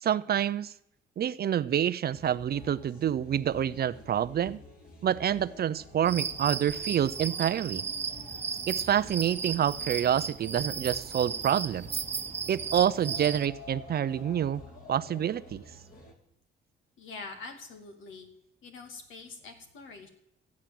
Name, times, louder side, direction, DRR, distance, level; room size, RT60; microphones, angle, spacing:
voice 1, 0.0-0.7 1.2-4.6 5.0-7.8 8.7-11.9 12.5-14.6 14.9-15.6, right 10 dB, 50° right, 15 dB, 0.6 m, -27 dB
sound 1, 2.1-16.1, left 2 dB, 45° left, 3.4 m, -50 dB
sound 2, 6.1-13.5, right 6 dB, 35° right, 1.0 m, -35 dB
voice 2, 17.0-18.3 18.6-20.1, left 4 dB, 80° left, 5 dB, 2.7 m, -44 dB
14.5 x 8.6 x 7.7 m, 0.76 s
cardioid pair, 90°, 20 cm